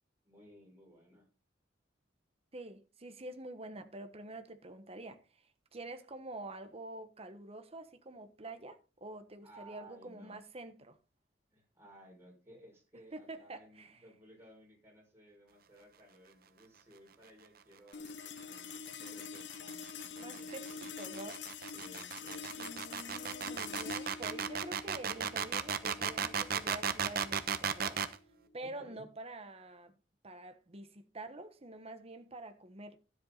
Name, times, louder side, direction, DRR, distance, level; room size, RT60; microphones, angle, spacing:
voice 1, 0.2-1.3 9.4-10.4 11.5-20.9 21.6-22.7 28.6-29.0, right 1 dB, 15° right, 6.0 m, -58 dB
voice 2, 2.5-11.0 13.1-14.0 20.2-21.4 22.6-28.0 28.5-30.0 30.2-33.0, right 2 dB, 35° right, 1.3 m, -47 dB
sound 1, 17.9-28.5, left 5 dB, 70° left, 0.9 m, -46 dB
sound 2, 18.9-28.2, right 7 dB, 55° right, 1.0 m, -35 dB
13.0 x 8.0 x 4.0 m
head